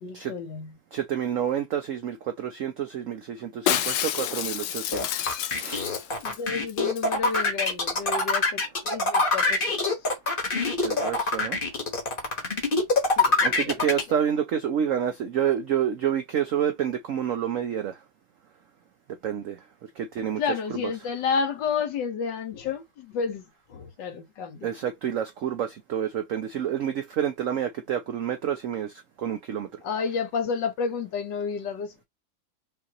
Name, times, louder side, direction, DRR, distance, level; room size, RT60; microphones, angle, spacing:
voice 1, 0.0-0.8 6.2-9.8 13.1-14.0 20.4-23.4 23.7-24.7 29.8-32.0, left 5 dB, 75° left, 1.6 m, -31 dB
voice 2, 0.9-5.9 10.5-11.6 13.4-18.0 19.2-19.6 20.0-20.4 24.6-28.9 29.2-29.7, right 9 dB, 75° right, 0.7 m, -28 dB
Shatter, 3.7-6.4 6.7-6.8 7.0-7.4 7.7-7.8, left 11 dB, 90° left, 1.4 m, -29 dB
sound 1, 4.9-14.0, left 3 dB, 30° left, 1.2 m, -24 dB
5.6 x 2.6 x 2.9 m
omnidirectional pair, 2.0 m